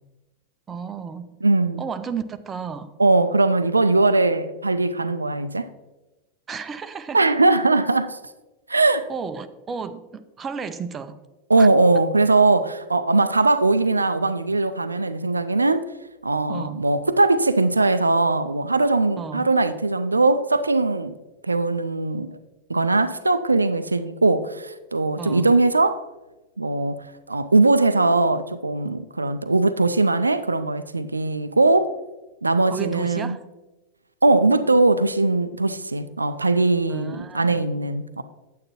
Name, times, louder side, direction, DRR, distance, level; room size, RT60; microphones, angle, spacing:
voice 1, 0.7-1.2 1.8-2.9 6.5-7.2 9.1-11.2 11.6-11.7 16.5-16.8 19.2-19.5 25.2-25.5 32.7-33.5 36.9-37.7, right 6 dB, 20° right, 0.5 m, -33 dB
voice 2, 1.4-1.8 3.0-5.7 7.1-8.2 8.7-9.0 11.5-15.8 16.2-21.1 21.4-22.4 22.7-26.0 26.6-31.9 32.4-33.4 34.2-38.2, right 3 dB, 80° right, 0.4 m, -20 dB
8.9 x 8.4 x 3.0 m
figure-of-eight pair, 90°, 0 cm